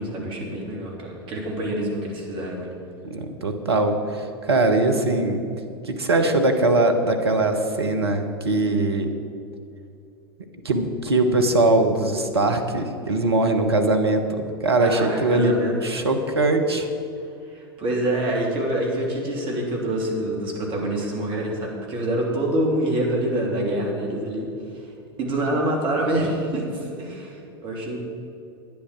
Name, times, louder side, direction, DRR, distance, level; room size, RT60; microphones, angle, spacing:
voice 1, 0.0-2.7 14.8-15.8 17.5-24.5 24.7-24.9 25.2-28.1, right 1 dB, 40° right, 0 dB, 3.1 m, -26 dB
voice 2, 3.0-5.4 5.8-9.1 10.6-14.2 14.6-15.6 15.8-16.9, right 2 dB, 80° right, 6 dB, 1.1 m, -21 dB
11.0 x 9.9 x 6.0 m, 2.6 s
figure-of-eight pair, 85°, 13 cm